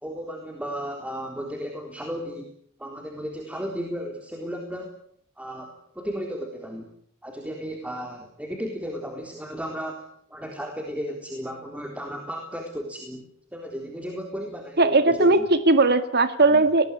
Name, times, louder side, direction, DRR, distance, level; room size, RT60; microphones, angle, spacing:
voice 1, 0.0-2.5 2.8-5.0 5.4-6.9 7.2-10.0 10.3-13.3 13.5-15.5 16.5-16.6, equal, 5° right, 2 dB, 3.8 m, -34 dB
voice 2, 14.8-16.9, right 2 dB, 50° right, 10 dB, 2.1 m, -18 dB
25.5 x 20.0 x 9.9 m, 0.69 s
head